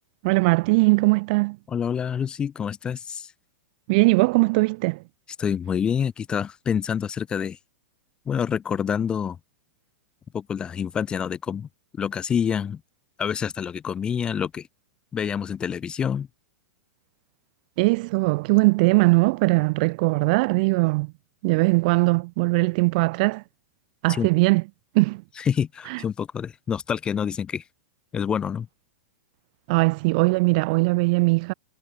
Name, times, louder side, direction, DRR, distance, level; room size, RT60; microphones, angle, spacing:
voice 1, 0.2-1.6 3.9-5.0 17.8-21.1 21.4-23.4 24.0-24.6 24.9-25.2 25.9-26.0 29.7-31.5, right 26 dB, 35° right, 0.9 m, -20 dB
voice 2, 1.7-3.3 5.4-7.6 8.3-9.4 10.3-11.7 12.0-12.8 13.2-14.7 15.1-16.3 24.1-24.3 25.4-27.6 28.1-28.7, left 7 dB, 10° left, 0.7 m, -27 dB
supercardioid pair, 175°, 8 cm